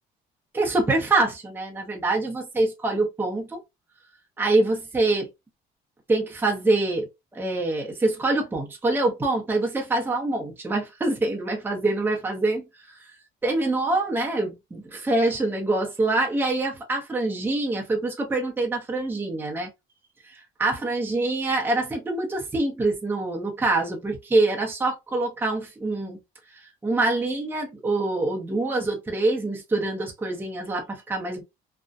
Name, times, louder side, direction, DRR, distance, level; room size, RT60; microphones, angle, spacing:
voice 1, 0.5-3.6 4.4-5.3 6.1-12.6 13.4-19.7 20.6-26.2 26.8-31.4, right 2 dB, 10° right, 0.7 m, -25 dB
2.6 x 2.1 x 2.3 m
cardioid pair, 110°, 17 cm